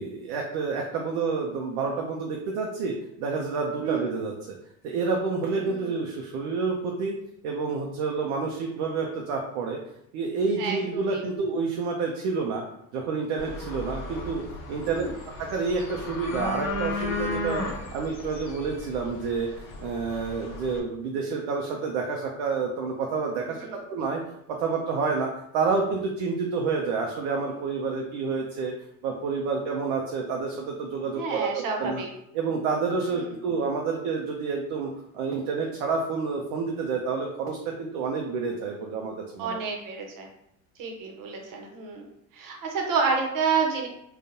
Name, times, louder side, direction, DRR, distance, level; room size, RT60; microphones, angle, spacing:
voice 1, 0.0-4.5 4.8-7.2 7.4-9.8 10.1-12.6 12.9-14.4 14.7-15.0 15.4-17.6 17.9-24.2 24.6-28.7 29.0-31.5 31.8-32.0 32.3-39.6, right 4 dB, 70° right, 0 dB, 0.7 m, -29 dB
voice 2, 10.6-11.2 14.8-15.1 23.4-23.7 31.1-32.1 33.0-33.2 39.4-40.3 40.8-42.1 42.3-43.9, right 5 dB, 50° right, 2 dB, 1.0 m, -29 dB
sound 1, 13.4-20.8, left 2 dB, 55° left, 0.8 m, -35 dB
3.7 x 2.4 x 2.7 m, 0.76 s
hypercardioid pair, 65°, 41 cm